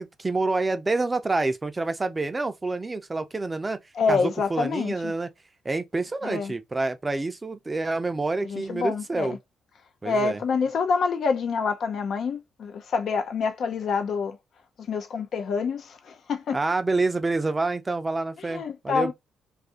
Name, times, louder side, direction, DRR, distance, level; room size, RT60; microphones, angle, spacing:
voice 1, 0.0-3.8 4.1-5.3 5.6-9.4 10.0-10.4 16.5-19.1, right 3 dB, 20° right, 0.5 m, -27 dB
voice 2, 3.9-5.1 6.2-6.5 8.4-9.4 10.0-14.4 14.8-16.6 18.4-19.1, left 5 dB, 60° left, 0.6 m, -27 dB
2.6 x 2.5 x 3.6 m
cardioid pair, 90°, 0 cm